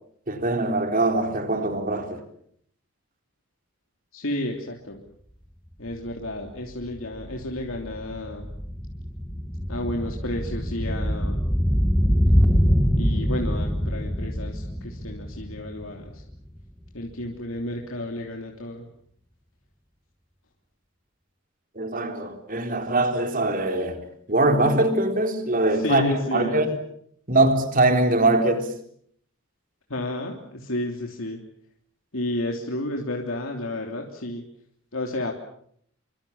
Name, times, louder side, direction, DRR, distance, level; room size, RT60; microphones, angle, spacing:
voice 1, 0.3-2.2 21.8-24.0 24.3-26.0 26.3-26.8 27.3-28.7, right 2 dB, 40° right, 3.9 m, -22 dB
voice 2, 4.1-5.0 5.8-8.5 9.7-11.4 13.0-16.2 16.9-18.9 25.7-26.6 29.9-31.4 32.1-34.4 34.9-35.3, left 1 dB, 75° left, 3.2 m, -31 dB
sound 1, 5.9-6.0 6.2-16.6 16.9-17.0, equal, 5° left, 1.7 m, -24 dB
28.0 x 24.5 x 7.2 m
head